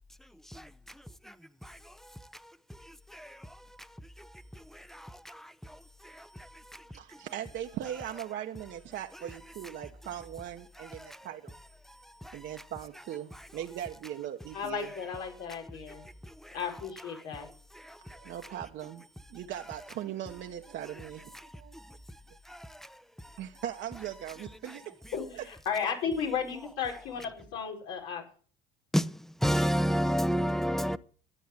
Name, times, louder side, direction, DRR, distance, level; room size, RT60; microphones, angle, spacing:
voice 1, 4.7-5.5 6.0-6.3 10.8-11.2 12.2-12.4 13.3-13.4 16.4-16.5 17.8-18.0 22.5-22.7 28.9-29.1 29.4-31.0, equal, ahead, 0.8 m, -30 dB
voice 2, 6.9-11.5 12.3-14.9 18.1-19.0 19.3-21.7 23.4-24.9, right 11 dB, 65° right, 1.3 m, -39 dB
voice 3, 14.5-16.1 16.5-17.5 25.1-28.2, left 7 dB, 85° left, 5.4 m, -34 dB
13.0 x 9.3 x 7.5 m
supercardioid pair, 90°, 21 cm